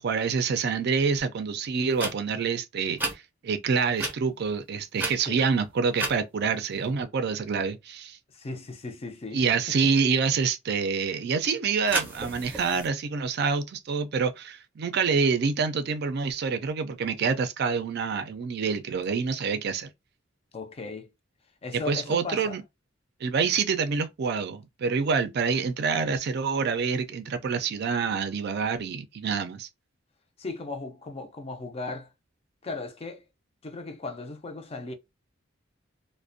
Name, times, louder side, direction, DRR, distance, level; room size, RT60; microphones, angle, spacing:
voice 1, 0.0-8.2 9.3-19.9 21.7-22.6 23.2-29.7, right 5 dB, 55° right, 0.4 m, -27 dB
sound 1, 1.9-2.1 3.0-3.1 4.0-4.1 5.0-5.5 6.0-6.2 11.9-12.9, right 2 dB, 10° right, 0.6 m, -31 dB
voice 2, 8.3-9.9 20.5-21.1 21.6-22.6 30.4-32.1 32.6-33.2 33.6-34.9, left 3 dB, 30° left, 0.4 m, -37 dB
2.4 x 2.1 x 2.5 m
head